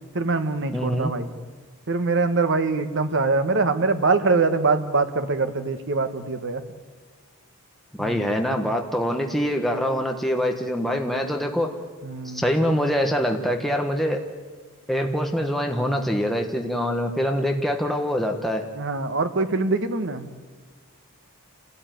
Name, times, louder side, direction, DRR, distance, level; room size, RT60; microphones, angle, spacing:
voice 1, 0.1-1.3 1.9-6.6 8.0-8.3 12.0-12.4 18.7-20.2, right 3 dB, 55° right, 9 dB, 1.4 m, -23 dB
voice 2, 0.7-1.1 8.0-11.7 12.2-14.2 14.9-18.7, equal, ahead, 2 dB, 1.4 m, -24 dB
28.5 x 13.5 x 9.3 m, 1.4 s
head